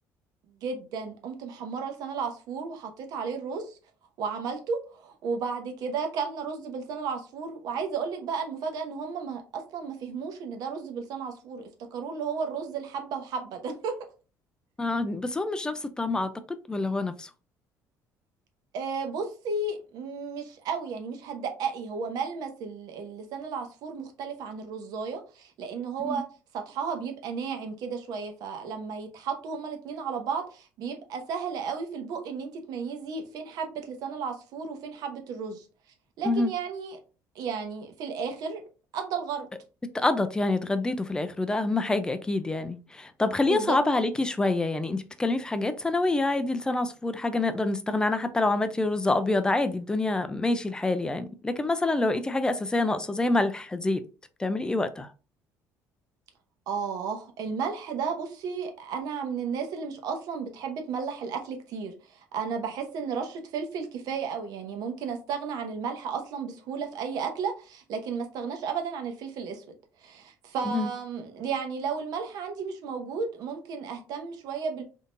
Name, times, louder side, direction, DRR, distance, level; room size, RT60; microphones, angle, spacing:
voice 1, 0.6-3.8 4.2-13.9 18.7-26.2 26.5-35.6 36.2-37.0 37.3-38.6 38.9-39.5 43.5-43.8 56.7-69.6 70.0-74.8, right 5 dB, 70° right, 0.9 m, -33 dB
voice 2, 14.8-16.3 16.7-17.3 26.0-26.2 36.2-36.5 39.9-54.0 54.4-55.1 70.7-70.9, left 2 dB, 10° left, 0.4 m, -26 dB
3.6 x 2.7 x 2.5 m
cardioid pair, 125°, 7 cm